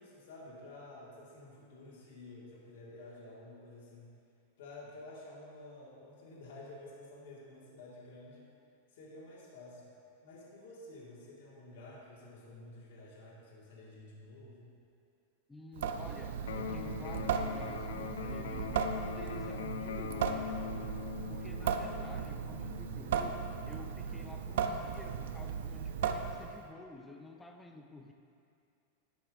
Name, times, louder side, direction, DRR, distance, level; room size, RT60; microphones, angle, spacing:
voice 1, 0.0-4.1 4.6-8.5 8.9-9.8 10.2-14.7, left 2 dB, 65° left, -5 dB, 1.8 m, -51 dB
voice 2, 15.5-21.0 21.3-28.1, left 2 dB, 5° left, 4 dB, 0.4 m, -51 dB
Water tap faucet / Sink (filling or washing) / Drip, 15.7-26.7, right 7 dB, 70° right, 0.4 m, -36 dB
Electric guitar, 16.4-24.4, left 9 dB, 85° left, 0.4 m, -43 dB
12.0 x 7.7 x 2.6 m, 2.5 s
supercardioid pair, 175°, 0 cm